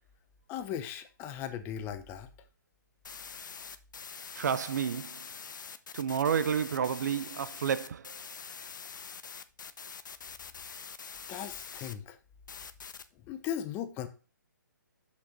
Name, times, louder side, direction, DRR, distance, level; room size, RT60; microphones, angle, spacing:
voice 1, 0.5-2.3 11.3-12.2 13.3-14.1, left 9 dB, 20° left, 0.9 m, -37 dB
sound 1, 3.0-11.9 12.5-13.0, left 6 dB, 70° left, 0.9 m, -45 dB
voice 2, 4.4-5.2 5.9-8.1, right 7 dB, 60° right, 0.7 m, -30 dB
7.7 x 6.3 x 4.1 m
hypercardioid pair, 145°, 11 cm